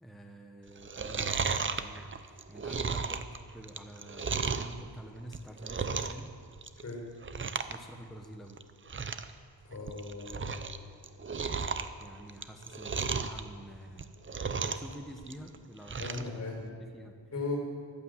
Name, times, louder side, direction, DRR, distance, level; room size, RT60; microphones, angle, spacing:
voice 1, 0.0-6.3 7.7-8.6 12.0-14.1 14.6-16.5 16.8-17.2, right 1 dB, ahead, 2 dB, 1.0 m, -48 dB
Chewing mastication, 0.8-4.7 5.2-6.3 6.5-6.9 7.2-7.8 8.0-8.1 8.6-8.7 8.9-9.3 9.7-10.8 11.0-13.4 13.9-14.9 15.2-16.3 16.7-16.8, right 5 dB, 30° right, 0.6 m, -34 dB
voice 2, 9.6-10.9 15.9-16.7 17.3-17.6, left 3 dB, 35° left, 0 dB, 4.8 m, -38 dB
15.0 x 11.5 x 8.1 m, 2.2 s
wide cardioid pair, 180°, 43 cm